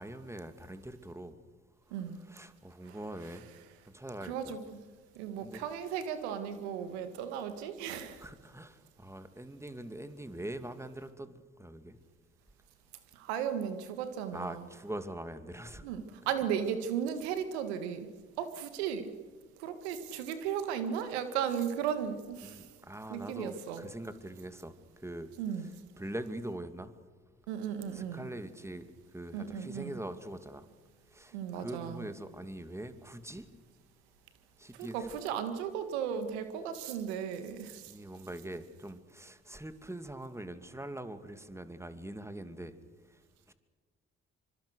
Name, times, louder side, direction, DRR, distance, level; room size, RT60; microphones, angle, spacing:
voice 1, 0.0-1.3 1.9-3.5 3.9-4.6 5.4-5.7 8.2-12.0 14.3-15.8 22.4-25.3 25.6-26.9 27.9-30.7 31.1-33.5 34.6-35.1 37.9-42.7 43.1-43.2 43.5-43.6, right 1 dB, 10° right, 2.6 m, -43 dB
voice 2, 4.2-4.8 5.1-8.2 13.1-14.6 15.8-18.1 18.4-19.1 19.6-22.7 23.1-23.9 25.4-25.7 27.5-28.3 29.3-30.0 31.3-32.0 34.7-37.9, right 8 dB, 85° right, 1.9 m, -35 dB
25.5 x 23.5 x 6.6 m
hypercardioid pair, 50°, 32 cm